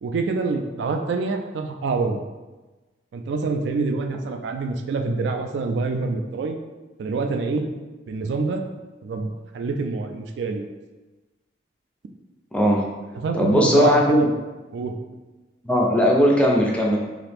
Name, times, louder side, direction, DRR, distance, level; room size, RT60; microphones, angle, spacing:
voice 1, 0.0-2.2 3.1-6.6 7.0-7.7 8.1-8.6 9.0-10.6 13.1-14.3 14.7-14.9, right 3 dB, 65° right, 4 dB, 0.3 m, -26 dB
voice 2, 12.5-12.8 13.4-14.3 15.6-17.0, equal, 5° left, -1 dB, 0.4 m, -18 dB
2.8 x 2.4 x 3.3 m, 1.2 s
head